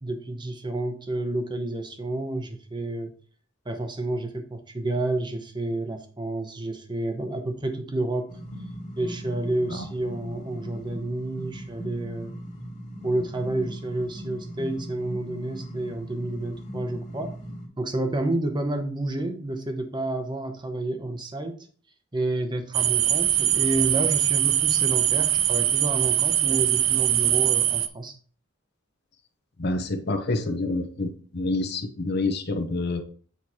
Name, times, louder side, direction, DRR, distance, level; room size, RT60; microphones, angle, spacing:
voice 1, 0.0-3.1 3.7-8.3 9.0-12.3 13.0-17.3 17.8-21.6 22.1-28.1, right 2 dB, 25° right, 6 dB, 0.8 m, -30 dB
sound 1, 8.3-17.7, equal, 40° left, 1.9 m, -39 dB
sound 2, 22.7-27.9, right 11 dB, 85° right, 0.5 m, -22 dB
voice 2, 29.6-33.0, left 2 dB, 55° left, 7 dB, 0.8 m, -27 dB
8.3 x 3.1 x 4.2 m, 0.43 s
head